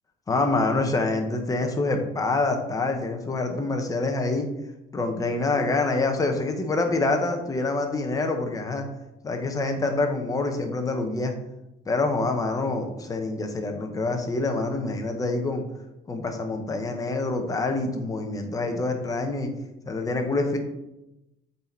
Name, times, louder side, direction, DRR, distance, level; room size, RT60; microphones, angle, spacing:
voice 1, 0.3-4.5 4.9-8.9 9.2-11.3 11.9-15.6 16.1-19.5 19.9-20.6, left 3 dB, 20° left, 4 dB, 1.0 m, -26 dB
7.7 x 4.1 x 4.5 m, 0.90 s
cardioid pair, 145°, 17 cm